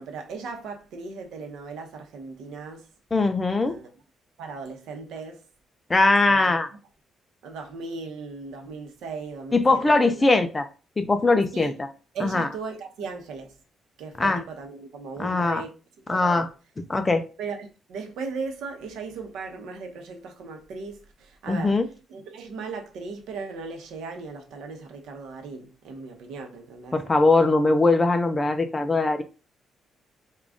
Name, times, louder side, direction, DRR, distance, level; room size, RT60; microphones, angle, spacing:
voice 1, 0.0-2.9 3.6-3.9 4.4-5.4 6.3-6.4 7.4-10.3 11.5-11.7 12.1-13.5 14.0-15.7 16.1-16.5 17.4-21.8 22.1-27.5, right 4 dB, 85° right, 0.9 m, -37 dB
voice 2, 3.1-3.8 5.9-6.7 9.5-10.7 11.0-11.9 12.2-12.5 14.2-14.4 15.2-15.6 16.1-16.5 16.9-17.2 21.5-21.9 26.9-29.2, left 3 dB, 15° left, 0.4 m, -21 dB
3.7 x 2.4 x 3.5 m
cardioid pair, 155°, 0 cm